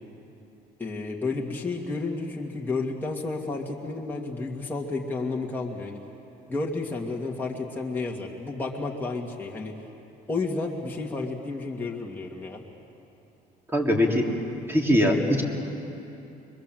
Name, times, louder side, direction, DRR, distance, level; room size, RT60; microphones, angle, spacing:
voice 1, 0.8-6.0 6.5-9.7 10.3-12.6, left 3 dB, 10° left, -3 dB, 2.1 m, -31 dB
voice 2, 13.7-14.3 14.7-15.4, left 1 dB, 15° right, 0 dB, 3.4 m, -21 dB
26.0 x 22.0 x 7.7 m, 2.9 s
cardioid pair, 110°, 17 cm